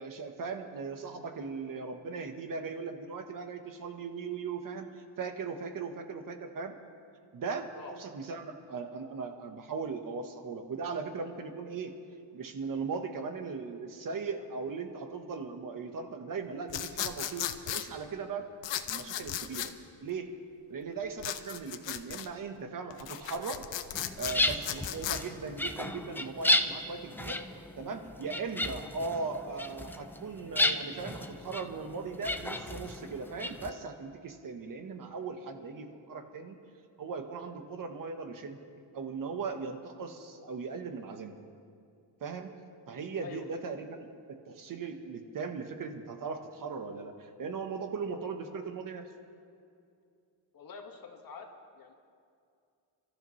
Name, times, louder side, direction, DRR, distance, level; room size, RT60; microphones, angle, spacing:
voice 1, 0.0-6.8 7.3-11.9 12.3-18.5 18.9-19.7 20.0-20.3 20.7-23.6 24.2-27.4 27.8-36.6 37.0-38.6 38.9-41.4 42.2-42.5 42.9-49.1, right 4 dB, 45° right, 6 dB, 1.2 m, -38 dB
sound 1, 16.7-17.9 18.6-19.7 21.2-22.3 22.9-25.2, left 11 dB, 75° left, 0.9 m, -36 dB
sound 2, 23.9-33.7, left 1 dB, 5° left, 0.3 m, -33 dB
voice 2, 50.5-51.5 51.8-51.9, left 5 dB, 50° left, 3 dB, 1.6 m, -46 dB
29.0 x 13.5 x 3.2 m, 2.4 s
cardioid pair, 160°, 44 cm